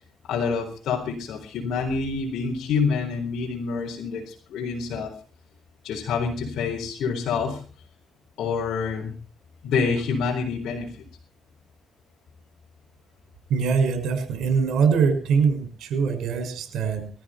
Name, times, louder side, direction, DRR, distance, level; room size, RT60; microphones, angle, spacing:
voice 1, 0.3-5.1 5.8-7.6 8.4-9.1 9.6-11.0, left 5 dB, 75° left, 0 dB, 4.1 m, -27 dB
voice 2, 13.5-17.1, right 5 dB, 80° right, 7 dB, 5.9 m, -23 dB
22.0 x 14.0 x 4.4 m, 0.40 s
cardioid pair, 90°, 0 cm